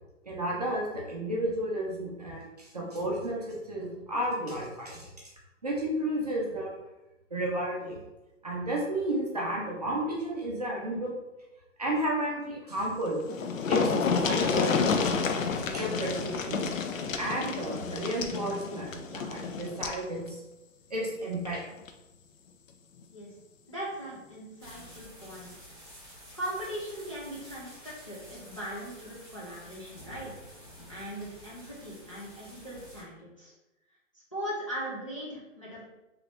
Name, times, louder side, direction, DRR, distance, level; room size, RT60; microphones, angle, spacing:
voice 1, 0.3-5.3 5.6-6.7 7.3-8.0 8.4-11.2 11.8-13.2 13.7-15.1 15.6-16.7 17.2-20.4 20.9-21.6, right 1 dB, 30° right, -3 dB, 0.5 m, -32 dB
sound 1, 12.9-13.0 13.2-20.0 21.3-21.5 21.9-22.0, left 5 dB, 85° left, 0.6 m, -29 dB
voice 2, 23.7-25.5 26.3-30.3 30.9-33.5 34.3-35.8, equal, 25° left, -8 dB, 0.4 m, -39 dB
sound 2, 24.6-33.0, equal, 5° left, 0.8 m, -50 dB
3.3 x 3.0 x 2.4 m, 1.0 s
hypercardioid pair, 170°, 39 cm